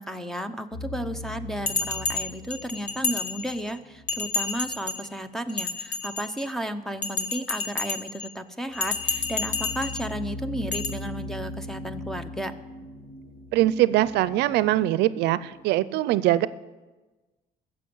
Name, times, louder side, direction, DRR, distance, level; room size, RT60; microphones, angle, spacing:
voice 1, 0.0-12.5, equal, 5° left, 11 dB, 0.7 m, -33 dB
sound 1, 0.7-4.9 8.7-15.6, left 1 dB, 90° left, 1.7 m, -40 dB
Bell, 1.7-3.7 4.1-5.1 5.5-6.5 7.0-8.3 8.7-10.1 10.7-10.9, left 4 dB, 50° left, 1.6 m, -30 dB
voice 2, 13.5-16.5, right 15 dB, 90° right, 16 dB, 0.5 m, -22 dB
15.5 x 6.9 x 7.8 m, 1.2 s
cardioid pair, 115°, 17 cm